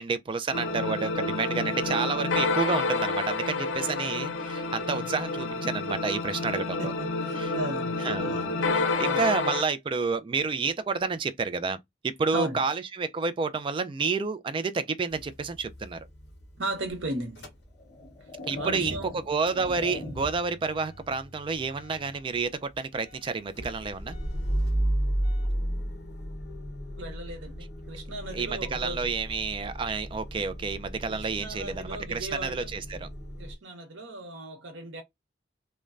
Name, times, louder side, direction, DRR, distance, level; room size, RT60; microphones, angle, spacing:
voice 1, 0.0-6.9 7.4-7.5 8.0-11.8 12.0-16.0 18.5-19.0 19.3-24.2 28.3-33.1, right 4 dB, 25° right, 0.3 m, -30 dB
sound 1, 0.5-9.6, left 3 dB, 85° left, 0.6 m, -29 dB
voice 2, 6.8-8.0 8.2-8.4 9.0-9.2 12.3-12.6 16.6-17.5 18.5-19.2 27.0-29.1 31.1-32.7 33.4-35.0, right 1 dB, 85° right, 0.9 m, -36 dB
Motor vehicle (road) / Engine starting / Idling, 15.1-18.3 18.6-33.5, right 1 dB, 60° left, 0.9 m, -35 dB
sound 2, 17.0-17.1 17.8-20.6, left 2 dB, 30° left, 0.8 m, -40 dB
3.1 x 2.1 x 2.4 m
head